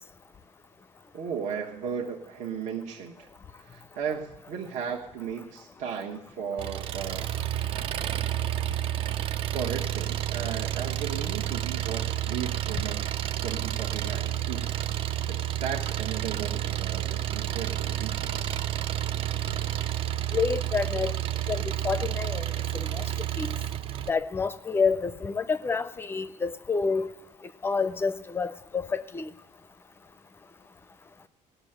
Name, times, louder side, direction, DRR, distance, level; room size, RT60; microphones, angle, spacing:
voice 1, 1.1-3.3 3.6-7.4 9.5-14.7 15.3-18.6, right 7 dB, 65° right, -1 dB, 1.3 m, -36 dB
Engine, 6.6-24.1, right 12 dB, 40° right, 0.4 m, -30 dB
voice 2, 20.3-21.2 21.5-22.4 22.7-23.0 23.4-23.5 24.1-27.1 27.6-29.3, left 5 dB, 15° left, 14 dB, 0.5 m, -28 dB
18.0 x 6.9 x 8.8 m, 0.86 s
cardioid pair, 165°, 14 cm